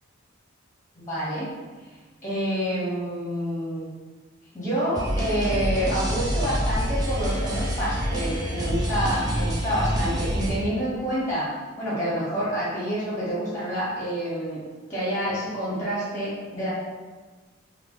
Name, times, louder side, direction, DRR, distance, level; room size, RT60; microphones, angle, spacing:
voice 1, 0.9-1.5 2.2-3.9 4.5-11.5 11.8-14.6 14.9-16.7, equal, 15° left, -9 dB, 1.0 m, -28 dB
sound 1, 4.9-10.5, equal, 20° right, 0.4 m, -27 dB
2.9 x 2.6 x 3.5 m, 1.3 s
head